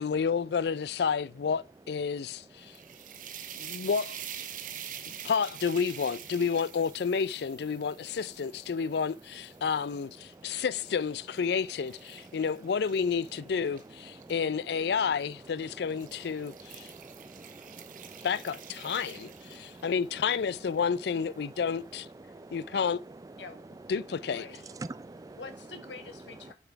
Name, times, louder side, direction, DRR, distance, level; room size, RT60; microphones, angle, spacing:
voice 1, 0.0-2.8 3.6-4.3 5.1-16.9 18.2-22.1 22.5-23.0 23.9-24.4, left 6 dB, 60° left, 0.4 m, -30 dB
voice 2, 2.6-3.9 4.5-5.2 10.3-10.6 12.3-12.4 14.2-14.3 15.9-18.3 18.8-19.9 21.4-21.6 22.2-22.8 23.4-23.5 24.5-25.4 26.4-26.5, right 2 dB, 20° right, 0.3 m, -48 dB
sound 1, 2.6-9.8 10.3-14.3 15.2-15.5 15.9-20.0, right 9 dB, 45° right, 0.8 m, -46 dB
voice 3, 24.3-24.6 25.4-26.5, left 4 dB, 80° left, 1.5 m, -45 dB
6.8 x 6.0 x 4.6 m
head